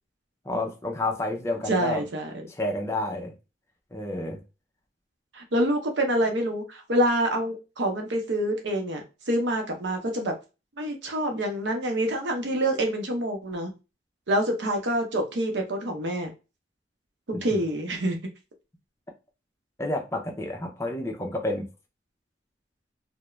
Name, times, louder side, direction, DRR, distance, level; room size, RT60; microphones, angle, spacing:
voice 1, 0.5-2.0 2.5-3.3 3.9-4.4 19.8-21.7, left 1 dB, 15° left, 0.5 m, -30 dB
voice 2, 1.7-2.3 5.3-10.3 10.8-13.7 14.3-16.3 17.4-18.2, right 1 dB, 80° right, 0.7 m, -26 dB
2.3 x 2.0 x 3.0 m
head